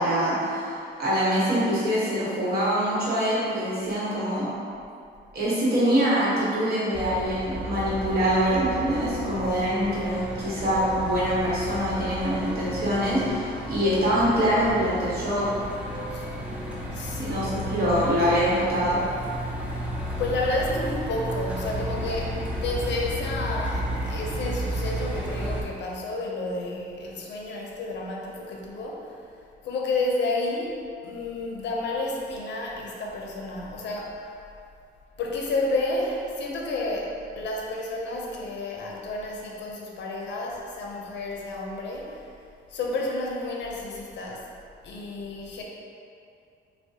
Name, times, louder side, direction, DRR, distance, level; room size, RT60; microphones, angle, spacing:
voice 1, 0.0-4.5 5.3-15.5 17.2-19.0, equal, 50° right, -9 dB, 1.2 m, -24 dB
Truck, 6.9-25.6, equal, 5° right, 0.5 m, -33 dB
voice 2, 16.9-17.5 20.2-29.2 29.6-30.7 31.0-34.4 35.2-42.3 42.7-44.5 44.8-45.6, left 2 dB, 65° left, -1 dB, 0.5 m, -31 dB
3.5 x 2.2 x 2.7 m, 2.5 s
cardioid pair, 90°, 20 cm